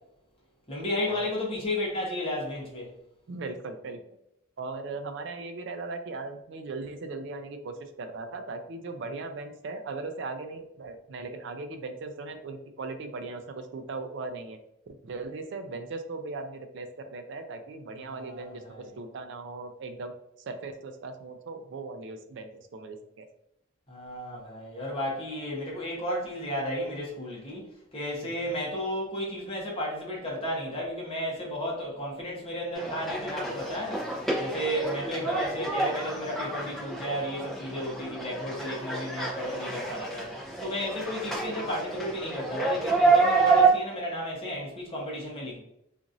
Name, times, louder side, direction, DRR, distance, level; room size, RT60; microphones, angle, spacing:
voice 1, 0.7-2.9 18.0-18.9 23.9-27.6 27.9-34.0 34.4-40.3 40.6-45.6, left 1 dB, 25° left, -4 dB, 0.9 m, -33 dB
voice 2, 3.3-4.0 4.6-14.6 14.9-20.1 20.4-23.3 28.2-28.6 35.2-35.4, right 3 dB, 60° right, 7 dB, 0.4 m, -38 dB
sound 1, 32.7-43.7, right 4 dB, ahead, 0.7 m, -28 dB
2.9 x 2.5 x 2.5 m, 0.80 s
head